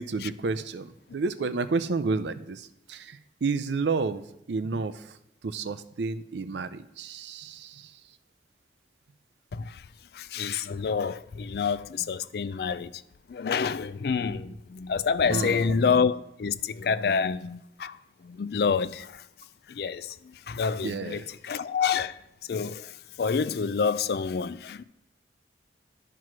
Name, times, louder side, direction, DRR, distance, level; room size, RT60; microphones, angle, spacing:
voice 1, 0.0-5.2 5.4-7.9 14.3-14.4 15.3-15.8 20.8-21.3, right 4 dB, 75° right, 0.5 m, -31 dB
voice 2, 9.5-9.8 10.1-13.0 13.3-18.0 18.2-19.2 19.7-22.2 22.5-22.9 23.2-24.8, left 5 dB, 60° left, 0.3 m, -28 dB
11.0 x 4.7 x 6.0 m
head